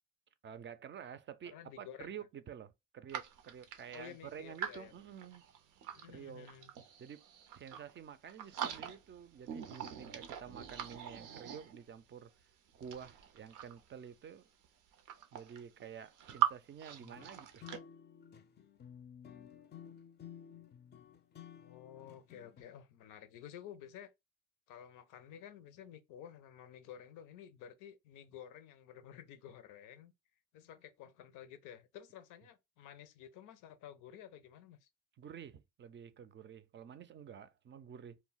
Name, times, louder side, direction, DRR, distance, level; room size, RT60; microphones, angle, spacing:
voice 1, 0.4-5.4 6.1-6.5 7.0-7.3 7.5-12.5 12.7-14.5 15.3-17.6 35.2-38.2, right 8 dB, 40° right, 0.4 m, -50 dB
voice 2, 1.5-2.1 3.9-4.9 5.9-6.7 21.5-24.1 24.7-30.1 30.5-34.9, left 9 dB, 90° left, 0.5 m, -52 dB
sound 1, 3.1-6.1 6.4-8.0 8.3-9.2 9.5-12.0 12.7-13.9 14.6-14.7 14.9-16.5 16.8-17.8, right 10 dB, 85° right, 0.6 m, -41 dB
sound 2, 17.0-22.6, left 8 dB, 35° left, 0.4 m, -54 dB
2.2 x 2.1 x 3.8 m
cardioid pair, 90°, 30 cm